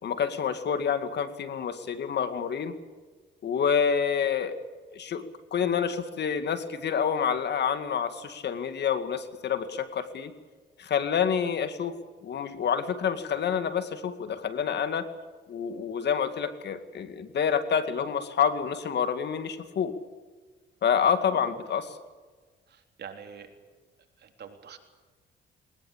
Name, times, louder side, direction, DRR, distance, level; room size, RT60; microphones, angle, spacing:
voice 1, 0.0-2.8 3.4-4.6 4.9-5.3 5.5-10.3 10.8-12.0 12.2-15.1 15.5-20.0 20.8-22.0, left 7 dB, 60° left, 10 dB, 2.2 m, -28 dB
voice 2, 20.9-21.4 22.7-23.5 24.2-24.8, right 7 dB, 55° right, 4 dB, 3.8 m, -46 dB
21.5 x 20.0 x 8.7 m, 1.4 s
cardioid pair, 90°, 20 cm